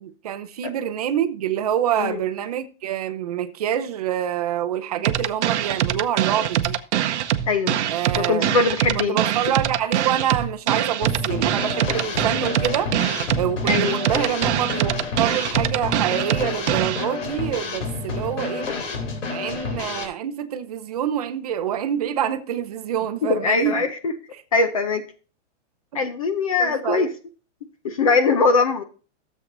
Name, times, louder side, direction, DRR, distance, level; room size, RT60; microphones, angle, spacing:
voice 1, 0.0-6.8 7.9-8.5 9.0-12.9 13.4-18.7 19.3-23.9 24.3-24.4 26.6-27.1, right 10 dB, 30° right, 0.6 m, -26 dB
sound 1, 5.0-17.0, right 11 dB, 65° right, 0.8 m, -23 dB
voice 2, 7.5-7.8 8.1-9.2 13.7-14.0 23.2-24.1 24.5-25.0 25.9-27.1 27.8-28.8, left 4 dB, 30° left, 0.5 m, -21 dB
Drum kit / Snare drum, 11.0-20.1, left 4 dB, 85° left, 3.2 m, -29 dB
13.5 x 7.5 x 2.6 m
supercardioid pair, 180°, 36 cm